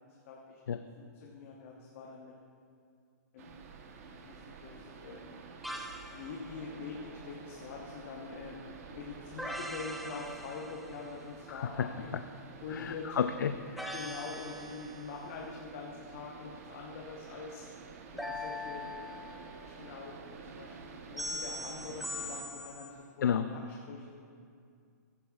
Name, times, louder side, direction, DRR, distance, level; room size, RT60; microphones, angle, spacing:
voice 1, 0.3-2.3 3.3-3.5 4.1-5.4 6.1-8.6 8.9-12.1 12.6-13.2 13.9-17.6 18.1-18.9 19.6-20.2 20.4-23.6 23.9-24.1, left 4 dB, 45° left, -2 dB, 1.1 m, -44 dB
sound 1, 3.4-22.4, right 5 dB, 50° right, 1.0 m, -50 dB
sound 2, 5.6-6.2 9.4-11.1 13.8-15.2 18.2-19.7 21.2-22.9, left 1 dB, ahead, 0.5 m, -41 dB
voice 2, 11.5-11.9 12.7-14.0 23.2-23.5, left 7 dB, 85° left, 9 dB, 0.4 m, -32 dB
15.5 x 11.0 x 2.4 m, 2.3 s
hypercardioid pair, 155°, 10 cm